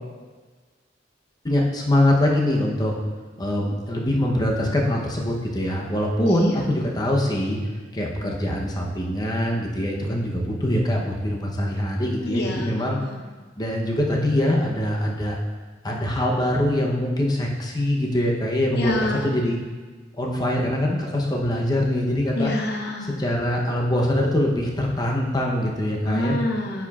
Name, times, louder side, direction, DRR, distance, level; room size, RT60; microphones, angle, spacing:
voice 1, 1.4-2.9 3.4-7.6 7.9-13.0 13.6-15.4 15.8-19.6 20.2-22.5 23.2-26.4, left 1 dB, 20° left, -1 dB, 0.8 m, -23 dB
voice 2, 6.3-6.6 12.2-13.2 18.7-19.3 22.4-23.1 26.1-26.9, left 1 dB, 65° left, 1 dB, 0.8 m, -27 dB
9.2 x 4.8 x 2.4 m, 1.4 s
head